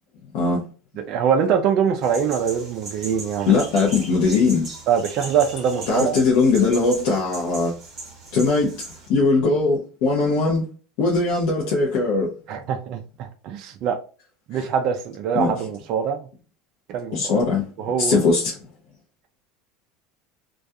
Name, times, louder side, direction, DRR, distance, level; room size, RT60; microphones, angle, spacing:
voice 1, 1.1-3.5 4.9-6.2 12.5-14.0 14.5-16.3 16.9-17.3 17.8-18.2, right 7 dB, 40° right, 0.3 m, -23 dB
sound 1, 2.0-9.1, right 2 dB, 20° right, 0.9 m, -38 dB
voice 2, 3.5-4.7 5.9-7.7 8.3-8.8 9.1-10.7 11.0-12.4 14.5-14.7 15.3-15.5 17.1-17.7 18.0-18.6, left 3 dB, 55° left, 0.5 m, -20 dB
2.3 x 2.3 x 2.6 m
cardioid pair, 180°, 0 cm